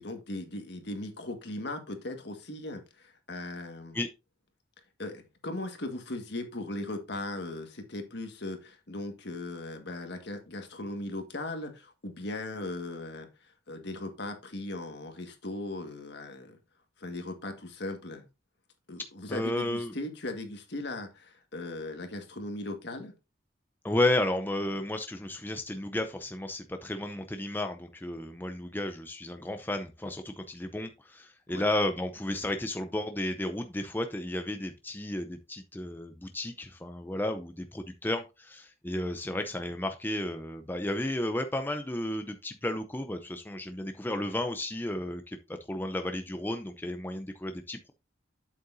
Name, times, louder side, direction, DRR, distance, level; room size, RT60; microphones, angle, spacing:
voice 1, 0.0-4.0 5.0-13.3 13.7-16.6 17.0-18.2 18.9-23.1 31.5-31.6, left 2 dB, 60° left, 5 dB, 1.7 m, -38 dB
voice 2, 19.3-19.9 23.8-45.4 45.7-47.9, left 1 dB, 10° left, 6 dB, 0.6 m, -33 dB
8.4 x 7.7 x 2.7 m, 0.26 s
head